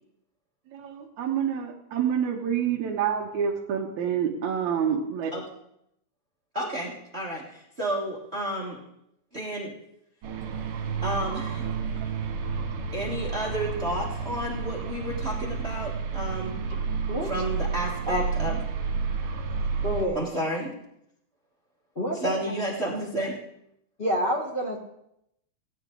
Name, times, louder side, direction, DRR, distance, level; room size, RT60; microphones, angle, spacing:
voice 1, 0.7-5.3, right 8 dB, 70° right, 0 dB, 2.2 m, -27 dB
voice 2, 6.5-8.8 9.3-9.7 11.0-11.6 12.9-16.6 17.2-18.6 20.1-20.7 22.1-23.4, right 1 dB, 35° right, -2 dB, 1.0 m, -31 dB
sound 1, 10.2-20.1, right 5 dB, 85° right, 3.0 m, -30 dB
voice 3, 18.1-18.5 19.8-20.2 21.9-22.5 24.0-24.8, equal, 50° left, -1 dB, 0.6 m, -28 dB
17.5 x 9.4 x 3.9 m, 0.78 s
omnidirectional pair, 3.7 m